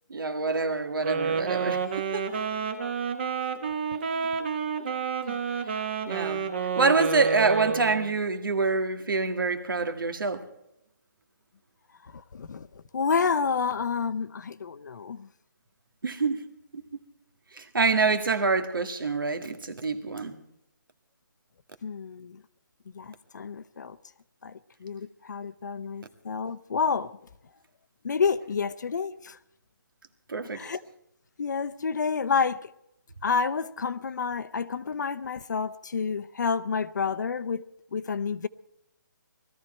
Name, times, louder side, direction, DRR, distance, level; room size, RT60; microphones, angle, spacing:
voice 1, 0.1-2.4 5.3-5.4 6.1-6.5 6.8-10.5 16.0-16.4 16.7-16.8 17.5-20.4 30.3-30.7, right 4 dB, 90° right, 1.9 m, -26 dB
Wind instrument woodwind instrument, 1.0-8.1, right 6 dB, 30° right, 1.1 m, -30 dB
voice 2, 12.0-12.7 12.9-15.3 21.8-22.4 22.9-24.0 24.4-27.1 28.0-29.4 30.5-30.8 31.4-32.7 33.2-37.6 37.9-38.5, left 5 dB, 60° left, 0.7 m, -29 dB
20.5 x 14.0 x 4.3 m
hypercardioid pair, 170°, 11 cm